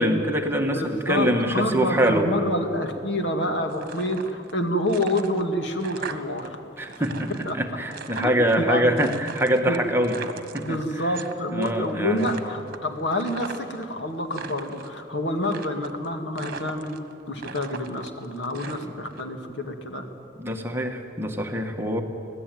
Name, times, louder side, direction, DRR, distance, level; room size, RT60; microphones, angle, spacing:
voice 1, 0.0-2.3 6.8-10.2 10.5-10.8 11.5-12.3 20.4-22.0, equal, 15° right, 3 dB, 1.7 m, -24 dB
voice 2, 0.6-6.6 7.5-7.6 8.2-8.8 9.6-9.9 10.6-17.0 17.3-20.1, left 1 dB, 70° left, 4 dB, 2.4 m, -28 dB
sound 1, 3.7-4.6 4.9-6.5 6.8-8.6 9.0-11.3 11.6-11.9 12.2-13.8 14.2-14.9 15.4-16.1 16.4-17.1 17.4-19.2, right 4 dB, 55° right, 1.5 m, -38 dB
25.5 x 17.0 x 9.4 m, 2.7 s
head